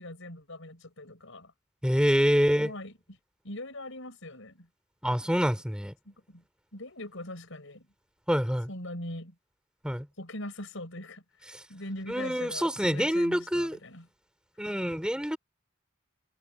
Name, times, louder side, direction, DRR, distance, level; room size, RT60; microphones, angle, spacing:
voice 1, 0.0-1.5 2.6-3.2 3.4-4.7 6.0-6.4 6.7-7.9 8.7-9.3 10.2-14.1, left 1 dB, 65° left, 6.5 m, -41 dB
voice 2, 1.8-2.7 5.0-5.9 8.3-8.7 9.8-10.1 11.5-11.6 12.1-13.8 14.6-15.4, equal, 5° right, 4.7 m, -26 dB
head